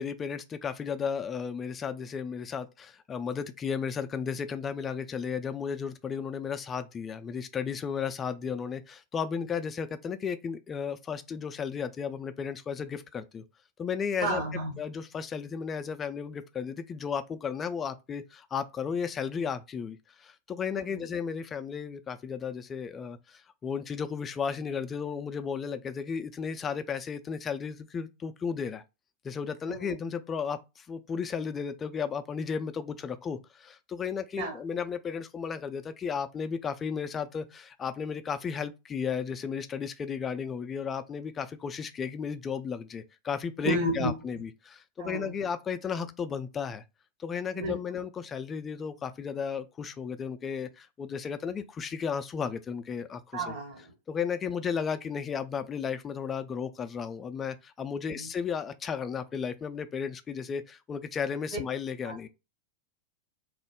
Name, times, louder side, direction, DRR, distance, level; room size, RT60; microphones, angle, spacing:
voice 1, 0.0-13.4 13.8-14.4 14.8-28.8 29.2-46.8 47.2-53.5 54.1-62.3, left 6 dB, 20° left, 0.4 m, -34 dB
voice 2, 14.2-14.8 20.7-21.0 29.7-30.0 34.4-34.6 43.6-44.1 45.0-45.3 47.5-47.8 53.3-53.9 58.1-58.3 62.0-62.2, right 2 dB, 55° right, 1.0 m, -32 dB
3.0 x 2.1 x 3.5 m
figure-of-eight pair, 90°, 0 cm